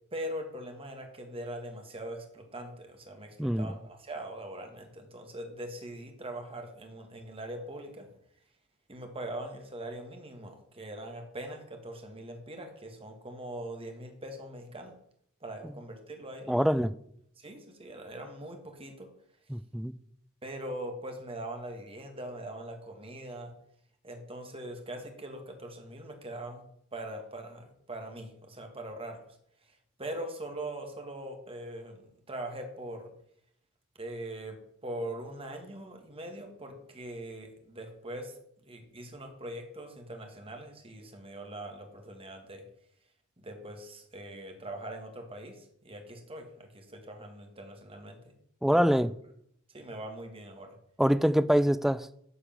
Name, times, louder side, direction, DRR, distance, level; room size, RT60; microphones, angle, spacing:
voice 1, 0.1-8.1 8.9-14.9 15.4-16.8 17.4-19.1 20.4-23.5 24.0-26.6 26.9-29.2 30.0-32.0 32.3-33.1 34.0-38.4 38.6-42.6 43.4-48.3 48.7-49.0 49.7-50.7, right 1 dB, 25° right, 1.7 m, -42 dB
voice 2, 3.4-3.7 16.5-16.9 19.5-19.9 48.6-49.1 51.0-52.1, equal, ahead, 0.3 m, -25 dB
10.0 x 5.0 x 7.4 m
head